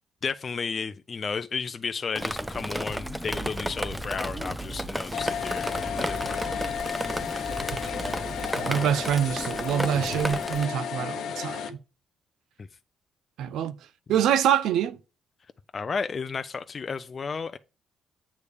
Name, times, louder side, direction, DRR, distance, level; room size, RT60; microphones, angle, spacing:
voice 1, 0.2-6.4 15.7-17.6, left 5 dB, 40° left, 0.5 m, -33 dB
Drip, 2.2-10.7, right 1 dB, 10° right, 0.5 m, -33 dB
sound 1, 2.9-8.5, right 1 dB, 25° left, 1.4 m, -40 dB
sound 2, 5.1-11.7, left 8 dB, 75° left, 0.9 m, -33 dB
voice 2, 8.6-11.8 13.4-13.7 14.1-15.0, right 9 dB, 80° right, 0.5 m, -25 dB
8.3 x 3.4 x 6.6 m
cardioid pair, 90°, 0 cm